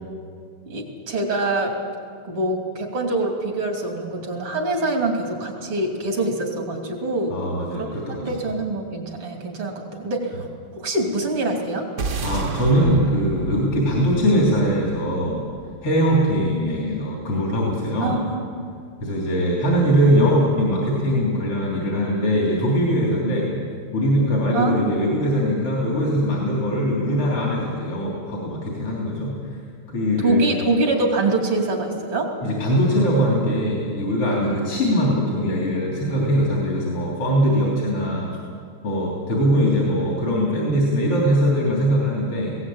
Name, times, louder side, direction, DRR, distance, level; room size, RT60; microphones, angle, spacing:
voice 1, 0.7-1.7 2.2-7.4 7.7-7.9 8.2-10.5 10.7-11.9 18.0-18.6 24.5-24.9 30.2-32.3 34.4-34.6, right 2 dB, 85° right, 2 dB, 3.7 m, -24 dB
voice 2, 7.3-8.4 12.2-15.4 15.8-18.2 19.0-23.5 23.9-29.6 29.9-30.6 32.4-38.3 38.8-42.6, equal, 85° left, -3 dB, 4.4 m, -21 dB
sound 1, 12.0-16.4, right 4 dB, 50° right, 0.9 m, -32 dB
19.5 x 17.5 x 8.7 m, 2.2 s
omnidirectional pair, 2.4 m